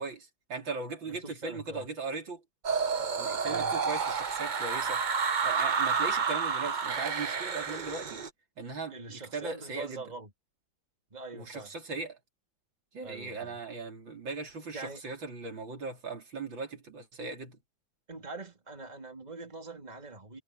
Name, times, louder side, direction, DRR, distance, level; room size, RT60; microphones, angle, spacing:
voice 1, 0.0-2.4 3.2-5.0 5.4-8.2 8.6-10.0 11.3-12.2 12.9-17.6, right 4 dB, 75° right, 4.2 m, -38 dB
voice 2, 1.1-1.9 3.4-3.8 8.9-10.3 11.1-11.7 13.0-13.6 14.7-15.0 18.1-20.4, right 3 dB, 20° right, 3.1 m, -43 dB
sound 1, 2.6-8.3, right 5 dB, 50° right, 0.5 m, -30 dB
omnidirectional pair, 2.1 m